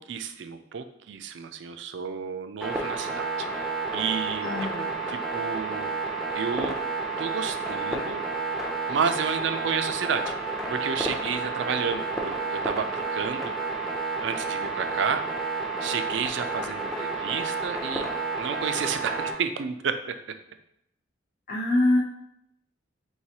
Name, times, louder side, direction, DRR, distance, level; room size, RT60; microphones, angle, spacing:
voice 1, 0.0-4.7 5.1-6.0 6.3-6.8 7.2-8.2 8.6-10.3 10.7-13.5 14.2-15.2 15.8-18.1 18.4-20.1, right 6 dB, 75° right, 9 dB, 0.4 m, -31 dB
sound 1, 2.6-19.3, right 3 dB, ahead, 0.5 m, -30 dB
voice 2, 4.4-5.0 21.5-22.0, left 1 dB, 50° left, -5 dB, 0.6 m, -24 dB
4.7 x 3.3 x 2.8 m, 0.75 s
head